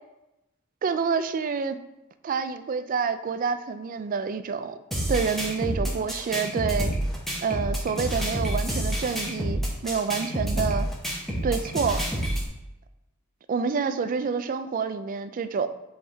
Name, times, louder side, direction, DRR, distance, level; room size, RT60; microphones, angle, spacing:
voice 1, 0.8-1.8 2.2-4.8 5.1-6.9 7.4-10.9 11.4-12.0 13.5-15.7, right 5 dB, 40° right, 11 dB, 0.3 m, -28 dB
sound 1, 4.9-12.5, right 1 dB, ahead, 1.2 m, -28 dB
7.6 x 3.6 x 3.4 m, 0.94 s
head